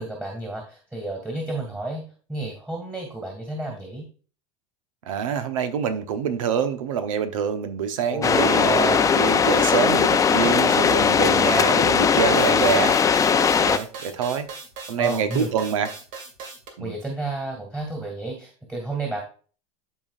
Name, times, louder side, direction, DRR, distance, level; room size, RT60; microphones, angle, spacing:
voice 1, 0.0-4.1 8.1-9.3 15.0-15.5 16.8-19.2, right 2 dB, 10° right, 2.1 m, -32 dB
voice 2, 5.1-13.3 13.6-14.5 14.9-15.9 16.8-16.9, right 7 dB, 85° right, 1.1 m, -26 dB
sound 1, 8.2-13.8, left 6 dB, 20° left, 0.6 m, -19 dB
sound 2, 12.3-16.7, right 4 dB, 55° right, 2.4 m, -38 dB
12.5 x 4.6 x 2.5 m
supercardioid pair, 110°, 17 cm